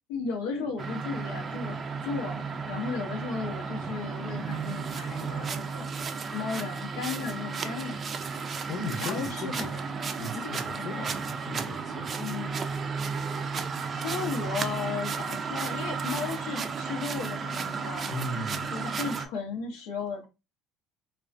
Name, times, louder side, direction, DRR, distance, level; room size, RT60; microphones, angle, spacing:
voice 1, 0.1-5.9 6.3-8.0 9.0-9.9 10.7-11.1 12.2-12.6 13.9-18.1 18.7-20.3, left 5 dB, 85° left, 0.6 m, -35 dB
sound 1, 0.8-19.3, right 5 dB, 40° right, 0.3 m, -33 dB
voice 2, 8.7-9.7 10.2-12.1 18.1-18.7, left 2 dB, 50° left, 0.7 m, -36 dB
2.4 x 2.1 x 2.5 m
supercardioid pair, 90°, 0 cm